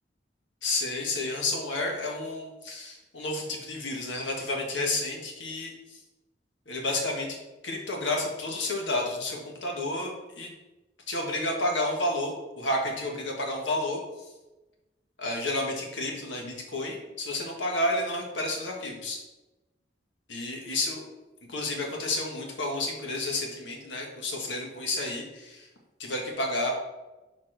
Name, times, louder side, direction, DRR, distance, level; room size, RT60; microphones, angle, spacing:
voice 1, 0.6-6.0 6.7-7.3 7.6-10.5 11.1-14.0 15.2-19.2 20.3-21.0 21.5-25.7 26.0-26.7, left 2 dB, 85° left, 0 dB, 1.5 m, -31 dB
6.7 x 4.2 x 4.9 m, 1.1 s
head